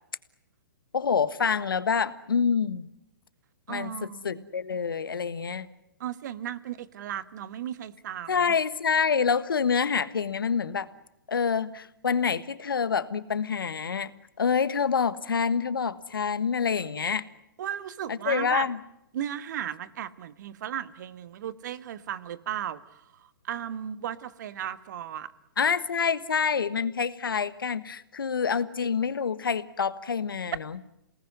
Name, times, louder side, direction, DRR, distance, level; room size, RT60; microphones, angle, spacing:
voice 1, 0.9-2.8 3.7-5.7 8.3-10.9 11.3-14.1 14.4-17.2 18.1-18.8 25.6-30.8, left 6 dB, 80° left, 14 dB, 1.5 m, -27 dB
voice 2, 3.7-4.5 6.0-8.6 17.6-18.7 19.1-25.3, right 10 dB, 55° right, 14 dB, 1.5 m, -35 dB
28.5 x 19.0 x 9.6 m, 0.81 s
hypercardioid pair, 130°, 11 cm